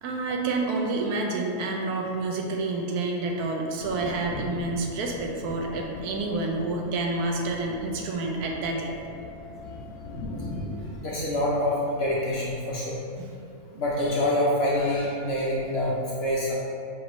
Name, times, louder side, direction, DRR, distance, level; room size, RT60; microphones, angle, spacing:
voice 1, 0.0-8.9 13.2-13.3 13.7-13.8, right 2 dB, 85° right, 1 dB, 1.1 m, -29 dB
Thunder, 3.8-11.0, left 1 dB, 85° left, 1.2 m, -39 dB
voice 2, 11.0-13.0 13.8-15.9 16.2-16.5, left 1 dB, 60° left, -6 dB, 0.7 m, -26 dB
5.7 x 2.7 x 3.0 m, 2.4 s
omnidirectional pair, 1.6 m